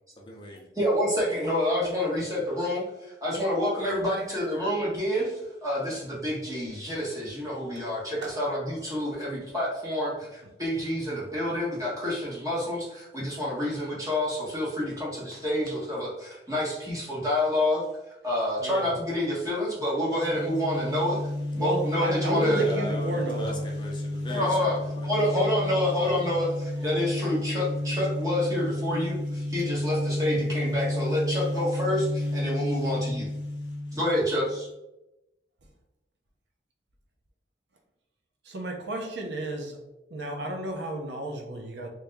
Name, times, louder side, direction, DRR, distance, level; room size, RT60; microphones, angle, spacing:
voice 1, 0.2-0.7 3.9-4.0 22.4-25.1 26.0-26.5, left 1 dB, 25° left, -2 dB, 0.6 m, -38 dB
voice 2, 0.8-2.8 3.2-17.8 18.2-21.2 21.5-22.6 24.3-24.7 25.0-33.3 33.9-34.7, left 1 dB, 20° right, -6 dB, 1.3 m, -28 dB
voice 3, 18.6-18.9 21.6-23.6 38.4-39.8 40.1-41.9, right 1 dB, 70° right, 2 dB, 0.6 m, -33 dB
sound 1, 20.1-34.6, left 1 dB, 90° left, 0.7 m, -31 dB
3.1 x 2.7 x 3.4 m, 0.92 s
head